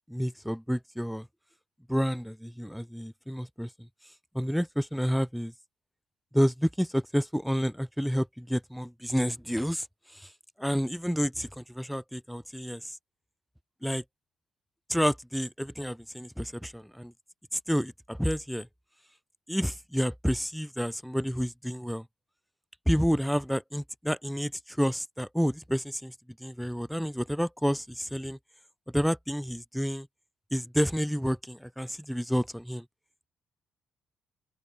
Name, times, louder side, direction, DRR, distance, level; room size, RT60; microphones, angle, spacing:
voice 1, 0.1-1.3 1.9-3.9 4.3-5.5 6.3-9.9 10.1-10.3 10.6-13.0 13.8-14.0 14.9-17.1 17.5-18.7 19.5-22.0 22.8-26.1 26.4-28.4 28.9-30.1 30.5-32.8, equal, ahead, 1.6 m, -29 dB
open air
cardioid pair, 90°, 0 cm